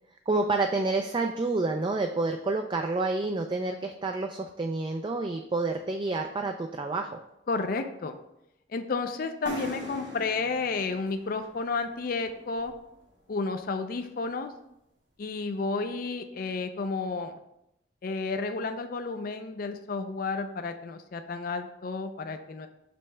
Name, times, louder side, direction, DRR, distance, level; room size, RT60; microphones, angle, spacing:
voice 1, 0.3-7.2, right 3 dB, 25° right, 4 dB, 0.3 m, -29 dB
voice 2, 7.5-8.2 8.7-12.7 13.3-14.5 15.2-17.4 18.0-22.7, left 4 dB, 50° left, 7 dB, 0.4 m, -31 dB
sound 1, 9.5-13.1, left 1 dB, 80° right, 1.3 m, -41 dB
5.3 x 3.2 x 5.6 m, 0.83 s
head